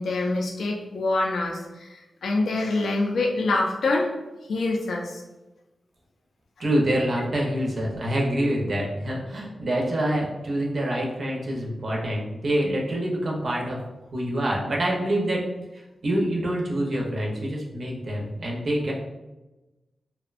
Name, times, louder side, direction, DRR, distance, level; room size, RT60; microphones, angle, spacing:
voice 1, 0.0-4.1 4.5-5.2, left 2 dB, 80° left, 0 dB, 0.3 m, -25 dB
voice 2, 6.6-13.8 14.1-15.5 15.7-18.9, right 1 dB, 50° right, -2 dB, 0.5 m, -26 dB
2.5 x 2.1 x 2.4 m, 1.1 s
wide cardioid pair, 170°, 0 cm